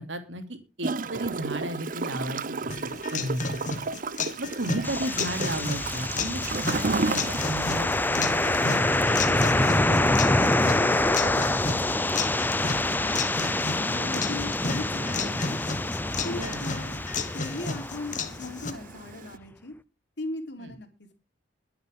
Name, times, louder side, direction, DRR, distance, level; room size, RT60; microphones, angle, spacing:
voice 1, 0.0-3.6 4.4-12.1 16.3-16.6 20.6-20.7, right 1 dB, 80° right, 7 dB, 2.9 m, -35 dB
Gurgling / Toilet flush, 0.8-19.4, right 4 dB, 45° right, 0.6 m, -36 dB
sound 1, 2.7-18.7, left 4 dB, 45° left, 1.7 m, -33 dB
sound 2, 4.8-18.7, left 2 dB, 10° left, 0.6 m, -26 dB
voice 2, 13.0-15.6 16.2-17.1 17.3-19.7 20.2-20.9, left 2 dB, 65° left, 5 dB, 3.7 m, -38 dB
22.0 x 8.0 x 3.7 m, 0.31 s
head